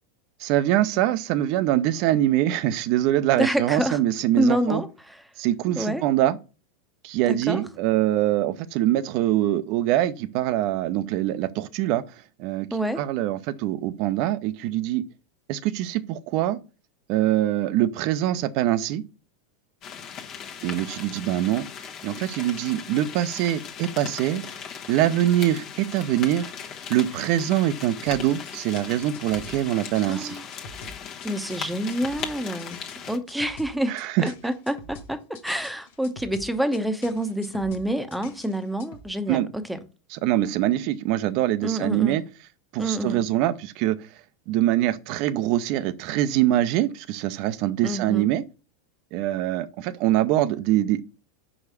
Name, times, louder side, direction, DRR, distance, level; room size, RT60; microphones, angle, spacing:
voice 1, 0.4-4.8 5.4-6.4 7.0-12.0 12.4-12.7 13.0-15.0 15.5-16.6 17.1-19.0 20.6-21.6 22.0-24.4 24.9-26.5 26.9-30.4 33.9-34.1 39.3-39.5 40.1-42.2 42.7-44.0 44.5-48.4 49.1-51.0, right 13 dB, 55° right, 0.6 m, -23 dB
voice 2, 3.4-4.0 4.3-5.2 5.8-6.0 7.3-7.6 12.7-13.1 30.0-30.5 31.2-32.8 33.1-39.8 41.6-42.2 42.8-43.2 47.8-48.3, right 1 dB, ahead, 0.9 m, -27 dB
sound 1, 19.8-33.2, left 7 dB, 45° left, 1.1 m, -38 dB
sound 2, 28.1-39.1, left 3 dB, 65° left, 1.1 m, -45 dB
5.4 x 5.0 x 4.8 m
hypercardioid pair, 90°, 0 cm